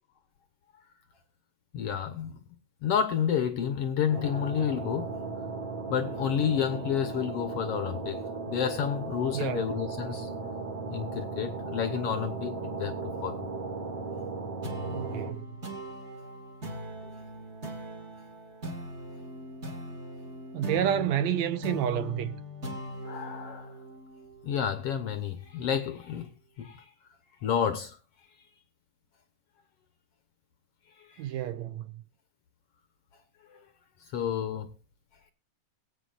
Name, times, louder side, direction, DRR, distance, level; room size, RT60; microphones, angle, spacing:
voice 1, 1.7-2.4 2.8-5.1 5.9-8.2 8.5-10.3 10.9-13.4 23.0-23.8 24.4-26.3 26.6-26.9 27.4-28.0 31.0-31.3 33.5-33.6 34.0-34.7, left 8 dB, 70° left, 1.5 m, -30 dB
sound 1, 4.1-15.3, right 4 dB, 40° right, 2.4 m, -36 dB
voice 2, 9.3-9.7 14.9-15.5 20.5-22.4 31.2-32.0, right 11 dB, 80° right, 1.7 m, -30 dB
sound 2, 14.6-25.5, left 1 dB, 25° right, 1.7 m, -40 dB
22.5 x 8.4 x 2.5 m
omnidirectional pair, 3.8 m